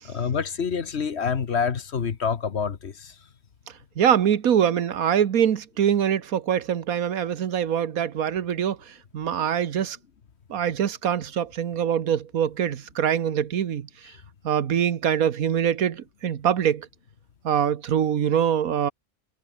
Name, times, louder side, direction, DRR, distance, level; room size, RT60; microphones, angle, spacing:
voice 1, 0.0-3.1, left 6 dB, 50° left, 1.4 m, -27 dB
voice 2, 4.0-10.0 10.5-13.9 14.4-16.9 17.4-18.9, right 9 dB, 85° right, 1.5 m, -24 dB
omnidirectional pair, 1.5 m